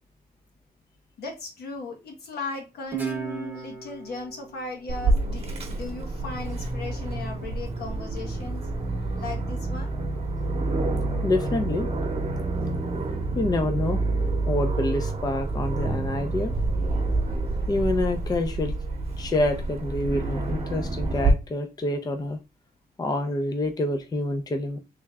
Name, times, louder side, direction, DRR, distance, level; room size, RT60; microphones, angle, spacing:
voice 1, 1.2-8.6 9.1-10.0, left 3 dB, 75° left, 1 dB, 1.3 m, -37 dB
Guitar, 2.9-6.2, right 6 dB, 10° right, 0.9 m, -36 dB
Aircraft, 4.9-21.3, right 2 dB, 40° right, 1.0 m, -28 dB
voice 2, 11.2-11.9 13.3-14.0 14.5-16.5 17.7-18.7 19.2-22.4 23.0-24.8, left 2 dB, 25° left, 5 dB, 0.5 m, -27 dB
3.4 x 3.1 x 3.4 m, 0.27 s
cardioid pair, 120°, 17 cm